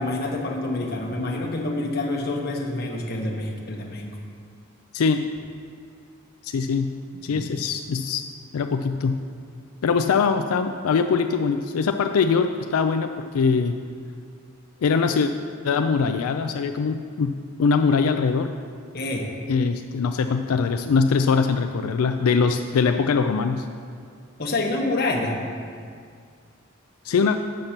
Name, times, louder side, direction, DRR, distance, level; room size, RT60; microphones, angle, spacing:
voice 1, 0.0-4.1 7.3-7.5 18.9-19.3 24.4-25.4, left 2 dB, 45° left, 1 dB, 1.0 m, -27 dB
voice 2, 4.9-5.3 6.4-6.9 7.2-8.3 8.5-9.2 9.8-13.1 13.3-13.8 14.8-15.3 15.6-17.3 17.6-18.5 19.5-23.7 27.0-27.4, left 5 dB, 90° left, 7 dB, 0.4 m, -22 dB
7.6 x 6.6 x 5.7 m, 2.2 s
head